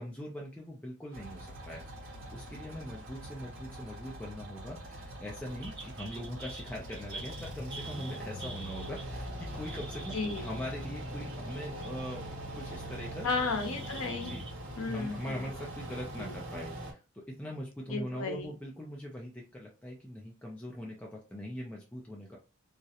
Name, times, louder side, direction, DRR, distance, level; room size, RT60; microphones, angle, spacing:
voice 1, 0.0-12.2 12.5-13.3 14.2-14.4 14.9-22.4, equal, 5° left, 0.3 m, -42 dB
sound 1, 1.1-16.9, equal, 70° right, 1.0 m, -42 dB
sound 2, 5.6-12.0 12.3-14.5, right 3 dB, 20° right, 0.8 m, -47 dB
voice 2, 10.1-10.5 13.2-14.3 14.8-15.5 16.3-16.4 17.9-18.5, left 4 dB, 85° left, 0.6 m, -34 dB
2.4 x 2.0 x 2.7 m
head